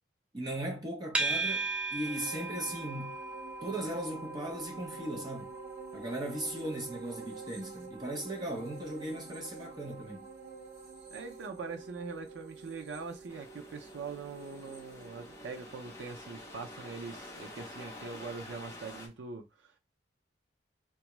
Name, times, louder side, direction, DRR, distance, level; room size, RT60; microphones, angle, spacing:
voice 1, 0.3-3.2 3.6-5.5 5.9-10.3, right 1 dB, 25° right, 0.7 m, -38 dB
sound 1, 1.1-18.3, right 3 dB, 5° right, 0.3 m, -42 dB
sound 2, 2.0-15.7 16.1-16.2, right 5 dB, 60° right, 0.9 m, -50 dB
voice 2, 11.1-19.8, right 4 dB, 80° right, 0.5 m, -42 dB
sound 3, 13.3-19.1, left 2 dB, 15° left, 0.7 m, -48 dB
3.3 x 2.3 x 3.0 m
head